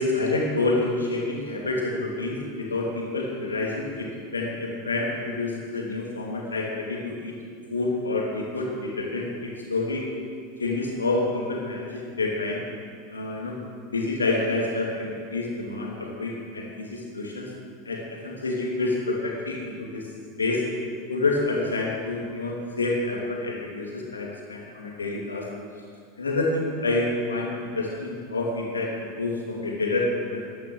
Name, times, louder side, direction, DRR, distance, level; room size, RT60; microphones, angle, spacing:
voice 1, 0.0-7.3 7.7-10.0 10.6-12.6 13.1-13.6 13.9-17.5 17.9-20.1 20.4-20.6 21.1-25.5 26.2-30.4, left 2 dB, 80° left, -1 dB, 2.6 m, -28 dB
14.0 x 10.5 x 6.4 m, 2.2 s
figure-of-eight pair, 80°, 0 cm